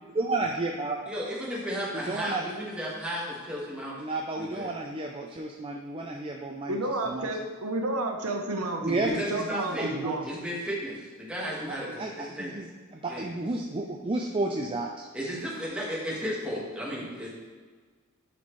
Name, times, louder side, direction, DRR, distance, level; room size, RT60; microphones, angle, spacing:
voice 1, 0.1-1.0 1.9-2.5 4.0-6.8 7.0-7.3 8.8-9.2 9.5-10.2 11.6-15.1, right 2 dB, 25° right, 1 dB, 0.4 m, -32 dB
voice 2, 1.1-3.9 4.4-4.7 9.1-9.9 10.3-12.5 13.1-13.3 15.1-17.3, equal, 5° right, -6 dB, 1.7 m, -34 dB
voice 3, 6.7-10.3, right 2 dB, 85° right, 3 dB, 1.0 m, -31 dB
10.5 x 4.3 x 3.2 m, 1.5 s
head